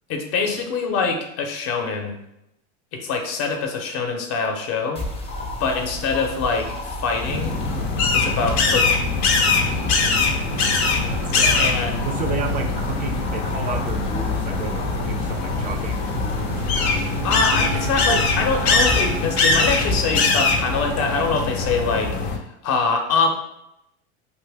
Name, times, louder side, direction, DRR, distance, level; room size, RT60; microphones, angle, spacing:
voice 1, 0.1-2.2 2.9-5.0 5.6-7.6 8.1-9.2 11.5-12.1 17.2-23.3, left 4 dB, 50° left, 3 dB, 0.8 m, -24 dB
sound 1, 5.0-20.0, left 2 dB, 20° left, 0.6 m, -32 dB
sound 2, 7.2-22.4, left 4 dB, 85° left, 0.7 m, -22 dB
voice 2, 11.1-11.7 12.0-17.2, right 5 dB, 25° right, 5 dB, 0.4 m, -33 dB
Wind instrument woodwind instrument, 16.7-21.6, right 8 dB, 80° right, 0.5 m, -36 dB
2.8 x 2.5 x 3.4 m, 0.83 s
supercardioid pair, 115°, 31 cm